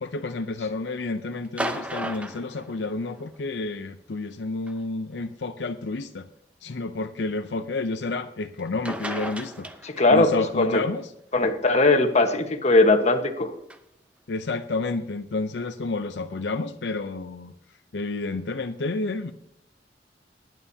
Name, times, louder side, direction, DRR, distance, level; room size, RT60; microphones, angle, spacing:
voice 1, 0.0-6.3 6.6-9.7 10.1-11.1 14.3-17.5 17.9-19.3, left 3 dB, 80° left, 8 dB, 0.6 m, -30 dB
sound 1, 1.4-3.4 4.7-4.8 5.7-5.8 8.6-8.7 8.8-10.3 13.7-13.8, right 1 dB, 5° right, 0.8 m, -34 dB
voice 2, 9.8-10.3 10.6-10.8 11.3-13.5, left 2 dB, 40° left, 6 dB, 1.3 m, -19 dB
20.0 x 9.1 x 2.8 m, 0.77 s
head